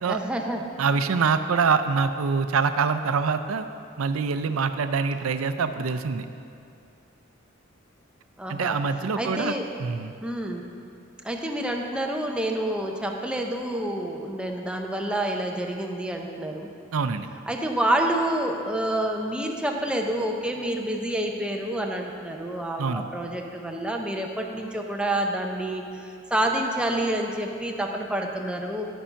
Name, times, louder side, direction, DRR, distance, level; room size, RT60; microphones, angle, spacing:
voice 1, 0.1-0.6 8.4-8.8 9.2-9.7 10.2-10.6 11.2-16.7 17.5-28.9, right 1 dB, 5° right, 1 dB, 0.7 m, -28 dB
voice 2, 0.8-3.7 4.0-6.3 8.5-9.5 9.8-10.1 16.9-17.3 22.8-23.1, right 5 dB, 90° right, 10 dB, 0.5 m, -25 dB
11.5 x 5.5 x 5.7 m, 2.5 s
head